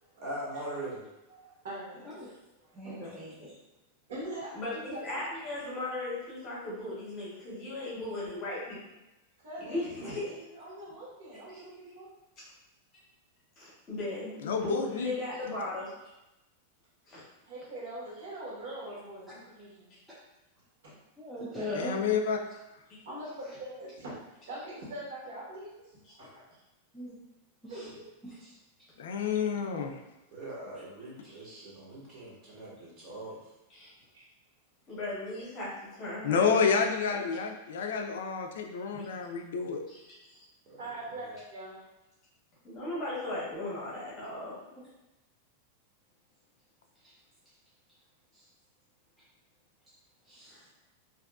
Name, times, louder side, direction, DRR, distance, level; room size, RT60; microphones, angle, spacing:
voice 1, 0.2-1.0 30.3-33.5 40.7-41.3, right 1 dB, 30° right, -6 dB, 0.8 m, -41 dB
voice 2, 1.3-2.3 2.6-3.1 4.1-5.0 9.4-12.1 14.9-15.0 17.4-19.9 20.8-21.0 21.5-22.0 23.0-24.2 24.5-26.4 27.7-28.0 34.1-34.2 40.8-41.8, right 1 dB, 70° right, -7 dB, 1.2 m, -43 dB
voice 3, 2.7-3.5 21.2-22.0 26.9-27.2 27.6-27.9 28.2-28.5 47.0-47.1 48.3-48.4 50.3-50.6, left 1 dB, 5° right, -10 dB, 0.3 m, -40 dB
voice 4, 4.5-8.8 9.6-10.2 11.5-11.6 13.6-15.9 17.1-17.2 19.9-20.0 31.2-31.4 33.7-33.9 34.9-35.7 36.0-36.8 37.1-37.3 38.9-39.1 39.9-40.4 42.6-44.5, left 2 dB, 25° left, -8 dB, 0.8 m, -37 dB
voice 5, 14.4-15.1 21.7-22.4 29.0-30.0 36.2-39.8, left 6 dB, 75° left, 3 dB, 0.3 m, -29 dB
2.6 x 2.4 x 2.3 m, 0.97 s
supercardioid pair, 180°, 0 cm